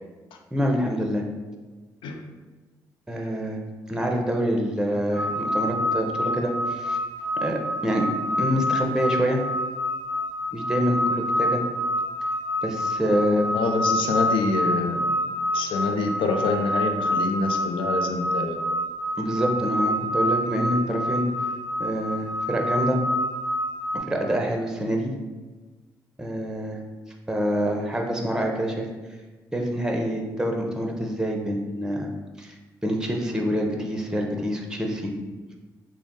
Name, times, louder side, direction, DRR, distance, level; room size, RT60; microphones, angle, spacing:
voice 1, 0.5-1.2 3.1-3.6 3.9-7.0 7.4-8.1 8.4-9.4 10.5-11.6 12.6-13.5 19.2-21.2 21.8-23.0 24.1-25.1 26.2-26.8 27.3-28.9 29.5-32.1 32.4-32.5 32.8-35.1, equal, 5° right, 1 dB, 0.7 m, -26 dB
sound 1, 5.1-24.0, left 1 dB, 85° left, 0.9 m, -27 dB
voice 2, 13.5-15.1 15.5-18.7, left 3 dB, 70° left, 4 dB, 0.4 m, -26 dB
3.4 x 2.1 x 3.7 m, 1.2 s
hypercardioid pair, 40°, 9 cm